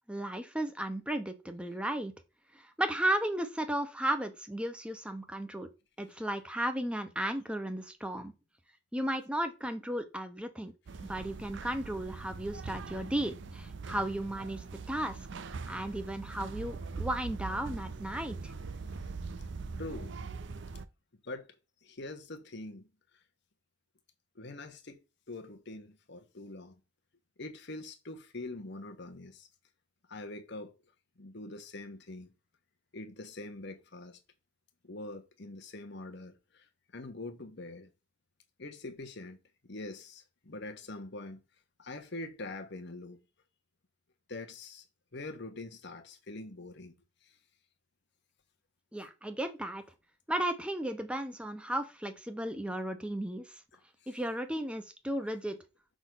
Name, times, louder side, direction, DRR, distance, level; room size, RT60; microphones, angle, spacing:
voice 1, 0.1-2.1 2.8-5.7 6.0-8.3 8.9-10.7 11.0-15.2 15.7-18.5 48.9-49.8 50.3-53.4 54.1-55.6, right 1 dB, 5° right, 0.9 m, -34 dB
roomtone ball outside, 10.9-20.8, right 4 dB, 60° right, 0.5 m, -42 dB
voice 2, 19.8-20.1 21.2-21.5 21.8-22.9 24.3-25.0 25.3-26.8 27.4-29.5 30.1-30.7 31.2-32.3 32.9-34.2 34.8-37.9 38.6-39.4 39.6-41.4 41.8-43.2 44.3-44.8 45.1-47.0 47.2-47.3 52.6-52.8 54.0-54.2, left 2 dB, 55° left, 1.2 m, -44 dB
6.2 x 3.9 x 5.1 m
head